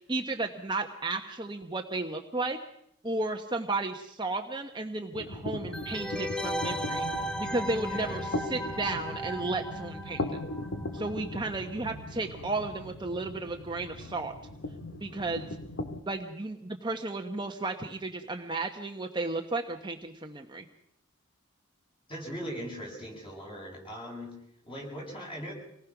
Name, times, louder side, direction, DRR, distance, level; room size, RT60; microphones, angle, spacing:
voice 1, 0.0-2.6 3.0-8.2 8.5-10.4 10.9-14.3 14.9-15.6 16.1-20.6, right 2 dB, 20° right, 4 dB, 1.1 m, -33 dB
sound 1, 5.1-16.0, left 1 dB, 65° left, 1.6 m, -39 dB
sound 2, 5.7-11.2 11.5-11.6, equal, 5° left, 0.9 m, -36 dB
voice 2, 7.9-8.2 22.1-25.5, equal, 25° left, -1 dB, 7.8 m, -40 dB
26.5 x 19.5 x 6.0 m, 0.72 s
head